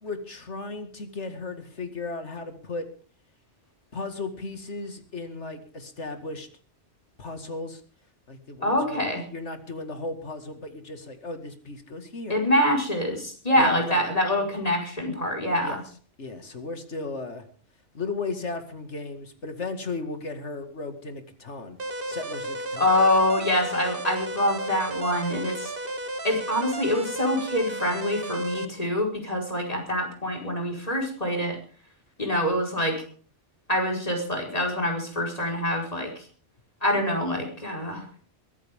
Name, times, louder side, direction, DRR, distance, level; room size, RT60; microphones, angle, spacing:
voice 1, 0.0-2.9 3.9-6.5 7.2-7.8 8.3-12.4 13.6-14.1 15.6-15.8 16.2-17.5 17.9-21.8 22.1-23.0, left 3 dB, 75° left, 7 dB, 2.4 m, -35 dB
voice 2, 8.6-9.2 12.3-15.8 22.8-25.7 26.2-31.6 32.2-33.0 33.7-36.1 36.8-38.0, left 1 dB, 30° left, 1 dB, 5.0 m, -25 dB
sound 1, 21.8-28.7, right 1 dB, 50° right, 1.8 m, -33 dB
22.5 x 14.5 x 3.7 m, 0.41 s
omnidirectional pair, 1.2 m